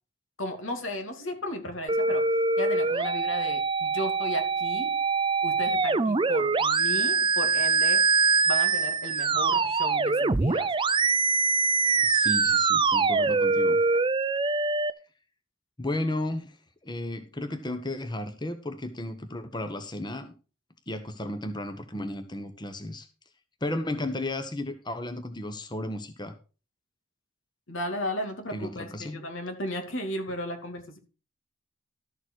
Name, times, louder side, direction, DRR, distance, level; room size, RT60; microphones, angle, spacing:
voice 1, 0.4-2.3 2.6-5.0 5.4-8.1 8.5-10.8 27.7-31.0, equal, 80° left, 2.6 m, -35 dB
sound 1, 1.9-14.9, right 4 dB, 25° right, 0.5 m, -24 dB
voice 2, 12.0-13.8 15.8-16.6 16.8-20.3 20.9-23.1 23.6-26.3 28.5-29.2, left 1 dB, 20° left, 1.1 m, -34 dB
13.0 x 7.2 x 4.6 m
head